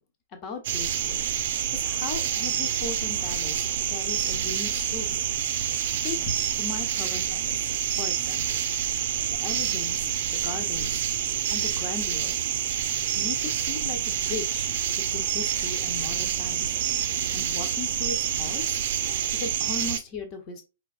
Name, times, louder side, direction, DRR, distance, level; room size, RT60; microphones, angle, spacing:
voice 1, 0.3-1.2 1.7-5.2 6.0-8.6 9.4-11.0 11.5-12.4 13.1-14.7 15.1-16.8 17.3-18.8 19.3-20.6, left 4 dB, 30° left, 5 dB, 1.2 m, -37 dB
sound 1, 0.6-20.0, right 9 dB, 45° right, 0.6 m, -27 dB
5.1 x 3.6 x 2.5 m, 0.28 s
figure-of-eight pair, 110°, 0 cm